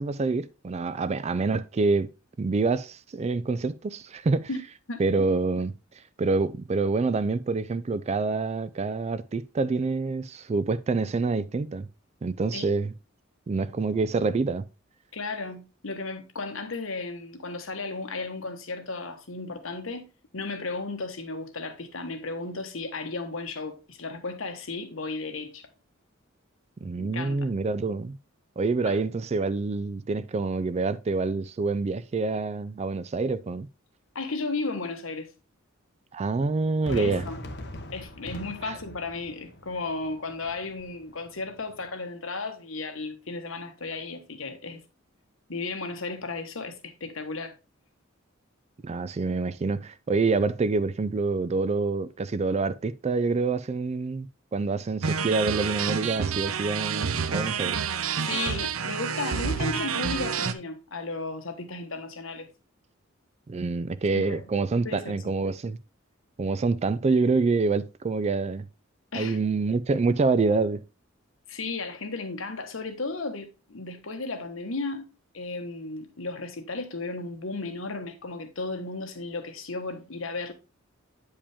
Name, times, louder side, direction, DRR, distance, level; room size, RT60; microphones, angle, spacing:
voice 1, 0.0-2.1 2.4-4.5 5.0-5.7 6.2-11.9 12.2-12.9 13.5-14.6 26.8-28.2 28.6-33.7 36.1-37.3 38.6-38.8 48.8-57.8 63.5-65.8 66.4-68.7 69.1-70.8, right 3 dB, 30° right, 0.4 m, -26 dB
voice 2, 15.1-20.0 20.3-25.7 27.0-27.5 28.8-29.0 34.1-35.3 36.9-37.4 37.9-44.8 45.5-47.5 58.3-62.5 64.1-64.4 64.8-65.3 69.1-69.4 71.5-75.1 75.3-80.5, left 3 dB, 75° left, 1.3 m, -34 dB
Fireworks, 36.8-41.9, left 1 dB, 55° left, 1.1 m, -42 dB
sound 1, 55.0-60.5, right 6 dB, 90° right, 0.6 m, -28 dB
8.5 x 5.1 x 3.5 m
head